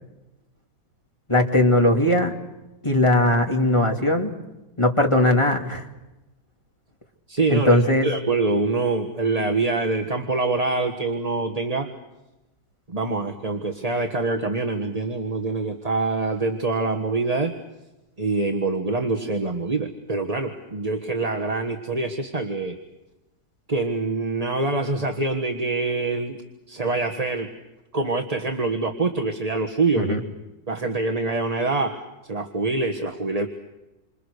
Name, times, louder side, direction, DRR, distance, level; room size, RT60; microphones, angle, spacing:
voice 1, 1.3-2.3 2.8-4.3 4.8-5.8 7.5-8.1 30.0-30.2, left 1 dB, 15° left, 2 dB, 2.7 m, -19 dB
voice 2, 7.3-11.9 12.9-17.5 18.2-22.8 23.7-26.4 26.7-27.5 27.9-30.1 30.7-33.5, right 3 dB, 20° right, 4 dB, 1.5 m, -25 dB
28.5 x 26.5 x 6.7 m, 1.0 s
omnidirectional pair, 1.9 m